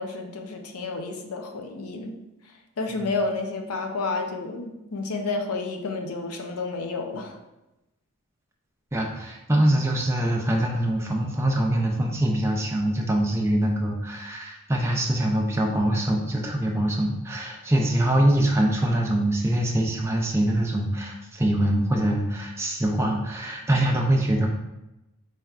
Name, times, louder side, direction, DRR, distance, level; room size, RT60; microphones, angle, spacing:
voice 1, 0.0-2.2 2.8-7.4, left 3 dB, 85° left, 4 dB, 0.6 m, -30 dB
voice 2, 8.9-24.5, right 1 dB, 10° right, 0 dB, 0.4 m, -24 dB
4.2 x 3.4 x 2.4 m, 0.96 s
head